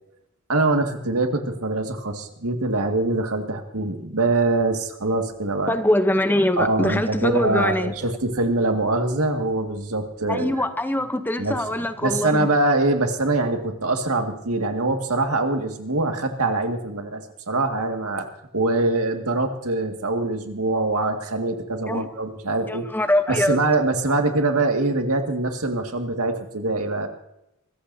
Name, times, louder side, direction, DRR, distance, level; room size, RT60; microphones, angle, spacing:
voice 1, 0.5-5.8 6.6-10.7 11.4-18.3 18.5-22.9 23.3-27.1, right 2 dB, 75° right, 5 dB, 2.0 m, -23 dB
voice 2, 5.7-7.9 10.3-12.5 21.9-22.1 22.7-23.6, left 1 dB, 10° left, 9 dB, 0.8 m, -23 dB
25.0 x 15.0 x 2.8 m, 0.85 s
head